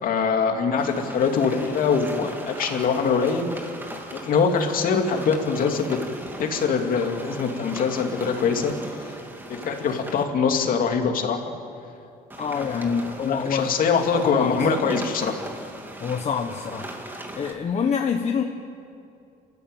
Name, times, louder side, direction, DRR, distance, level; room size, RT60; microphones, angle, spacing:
voice 1, 0.0-3.5 4.1-6.0 6.4-9.1 9.5-11.4 12.6-15.4, left 5 dB, 55° left, 4 dB, 2.7 m, -23 dB
sound 1, 0.8-10.2 12.3-17.5, right 1 dB, 10° right, 2.5 m, -38 dB
voice 2, 12.4-13.7 14.1-14.7 16.0-16.9 17.3-18.4, left 6 dB, 40° left, 3 dB, 1.3 m, -26 dB
28.5 x 13.5 x 9.1 m, 2.5 s
cardioid pair, 110°, 17 cm